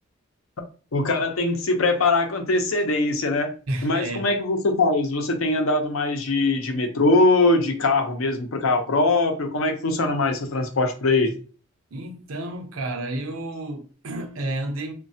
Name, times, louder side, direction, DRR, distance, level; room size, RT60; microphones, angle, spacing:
voice 1, 0.9-3.5 3.8-11.3, left 2 dB, 80° left, 0.6 m, -22 dB
voice 2, 3.7-4.4 11.9-14.9, right 1 dB, 85° right, 0.7 m, -31 dB
3.1 x 2.2 x 2.7 m
head